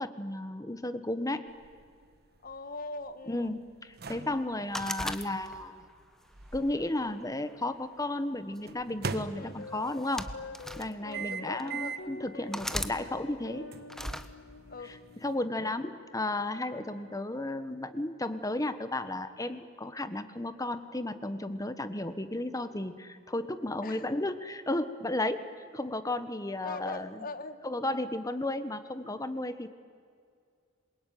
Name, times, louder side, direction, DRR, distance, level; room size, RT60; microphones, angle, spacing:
voice 1, 0.0-1.4 3.3-5.9 6.5-10.2 10.8-13.7 15.2-25.4 25.7-27.3 27.6-29.7, left 2 dB, 20° left, 11 dB, 1.3 m, -33 dB
sound 1, 1.5-7.6 8.7-10.0 11.1-12.2 12.6-12.8 13.7-15.3, right 5 dB, 55° right, 1.4 m, -42 dB
voice 2, 2.4-3.5 4.5-4.6 9.4-9.6 11.0-12.0 14.7-15.0 15.5-15.7 23.8-24.1 26.6-27.6, left 2 dB, 50° left, 11 dB, 1.5 m, -41 dB
sound 2, 4.7-5.8 6.4-7.6 8.6-8.8 9.8-10.9 11.6-11.7 12.5-13.0 13.9-14.3, equal, 5° left, 1.0 m, -37 dB
sound 3, 9.1-17.7, left 2 dB, 70° left, 1.7 m, -49 dB
27.0 x 22.5 x 9.4 m, 2.2 s
head